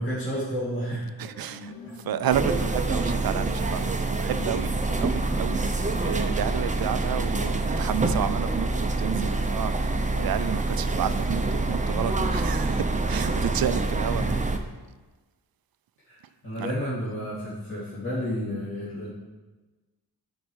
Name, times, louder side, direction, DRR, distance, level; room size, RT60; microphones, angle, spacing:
voice 1, 0.0-1.1 1.8-1.9 14.1-14.3 16.1-16.2 16.4-19.1, equal, 30° left, 2.4 m, -31 dB
sound 1, 1.2-11.4, left 3 dB, 70° left, 1.3 m, -45 dB
voice 2, 1.2-4.7 5.0-14.2 16.6-16.7, right 10 dB, 65° right, 0.5 m, -31 dB
sound 2, 2.3-14.6, right 2 dB, 20° right, 0.7 m, -26 dB
9.6 x 4.5 x 4.7 m
wide cardioid pair, 90°, 39 cm